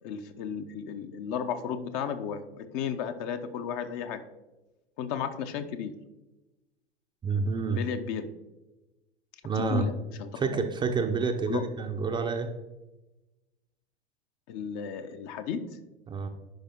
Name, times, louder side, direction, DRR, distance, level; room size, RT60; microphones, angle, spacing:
voice 1, 0.0-4.2 5.0-6.0 7.7-8.3 9.5-10.4 11.4-11.6 14.5-15.6, left 7 dB, 40° left, 9 dB, 0.7 m, -34 dB
voice 2, 7.2-7.9 9.4-9.9 10.4-12.5 16.1-16.3, right 4 dB, 15° right, 5 dB, 0.6 m, -28 dB
10.5 x 5.0 x 3.6 m, 1.1 s
figure-of-eight pair, 95°, 32 cm